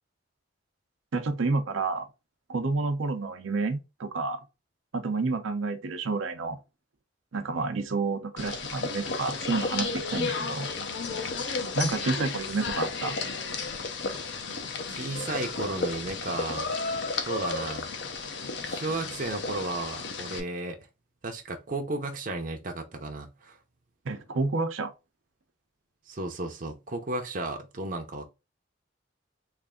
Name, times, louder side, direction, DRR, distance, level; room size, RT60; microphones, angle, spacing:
voice 1, 1.1-2.1 2.5-4.4 4.9-6.6 7.3-10.7 11.7-13.2 24.0-24.9, right 3 dB, 90° right, 0.7 m, -29 dB
sound 1, 8.4-20.4, left 4 dB, 60° left, 0.6 m, -33 dB
voice 2, 14.9-16.7 17.3-17.9 18.6-20.8 21.2-23.6 26.1-28.3, right 2 dB, 45° right, 0.6 m, -34 dB
3.2 x 2.5 x 3.6 m
head